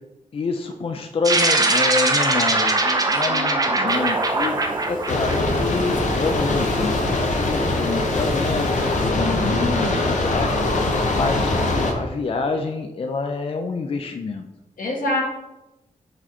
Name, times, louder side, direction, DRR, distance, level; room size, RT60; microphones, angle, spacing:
voice 1, 0.3-14.5, left 4 dB, 45° left, 5 dB, 0.4 m, -28 dB
sound 1, 1.2-5.9, right 2 dB, 25° right, 0.6 m, -21 dB
voice 2, 3.3-3.9 9.1-10.1 14.8-15.2, left 2 dB, 85° left, -1 dB, 1.6 m, -28 dB
Telephone, 3.9-9.1, right 2 dB, 85° right, 0.9 m, -37 dB
sound 2, 5.1-11.9, left 2 dB, 65° left, 0.9 m, -22 dB
5.0 x 4.9 x 4.2 m, 0.99 s
wide cardioid pair, 180°, 14 cm